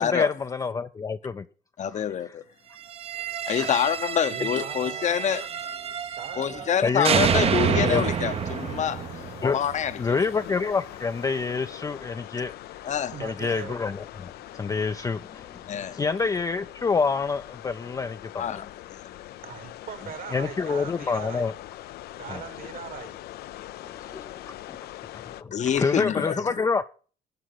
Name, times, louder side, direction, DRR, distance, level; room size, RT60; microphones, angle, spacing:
voice 1, 0.0-1.5 1.9-2.3 3.6-3.7 6.8-8.1 9.4-9.6 10.0-12.9 13.2-18.6 20.3-21.5 22.3-22.4 23.8-24.8 25.3-26.8, left 4 dB, 20° left, 0.4 m, -28 dB
voice 2, 1.8-2.4 3.5-5.5 6.4-10.2 12.8-13.1 15.7-16.0 18.4-19.3 25.5-26.4, left 8 dB, 45° left, 0.8 m, -27 dB
sound 1, 2.9-6.7 7.0-10.1, right 7 dB, 35° right, 0.6 m, -28 dB
voice 3, 4.3-7.5 13.1-13.8 19.4-21.5 22.2-23.2 26.4-26.5, right 8 dB, 60° right, 1.6 m, -41 dB
sound 2, 7.5-25.4, left 14 dB, 70° left, 0.5 m, -42 dB
11.5 x 4.9 x 7.7 m
cardioid pair, 110°, 17 cm